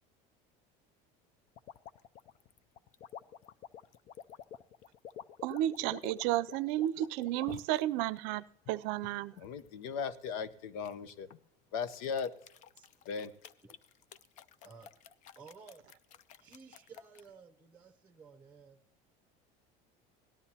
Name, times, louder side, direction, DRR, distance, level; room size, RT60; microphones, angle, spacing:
sound 1, 1.6-7.8 8.4-9.7 10.8-11.4 11.8-17.3, left 9 dB, 45° left, 0.5 m, -50 dB
voice 1, 5.4-9.3, right 14 dB, 70° right, 17 dB, 0.5 m, -32 dB
voice 2, 9.4-11.3 11.7-12.3 13.1-13.3, left 6 dB, 90° left, 13 dB, 0.9 m, -37 dB
voice 3, 15.4-15.8 16.4-18.8, right 5 dB, 10° right, 7 dB, 0.8 m, -54 dB
18.0 x 12.5 x 2.8 m, 0.71 s
cardioid pair, 145°, 18 cm